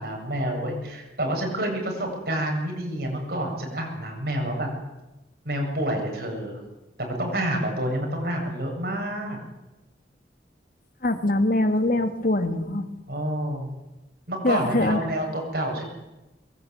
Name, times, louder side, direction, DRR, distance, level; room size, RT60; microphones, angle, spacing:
voice 1, 0.0-4.7 5.4-6.6 7.0-9.4 13.1-13.7 14.3-15.9, right 1 dB, 60° right, 2 dB, 8.0 m, -28 dB
voice 2, 11.0-12.9 14.4-15.0, left 1 dB, 50° left, 7 dB, 2.3 m, -23 dB
23.5 x 21.5 x 9.6 m, 1.0 s
head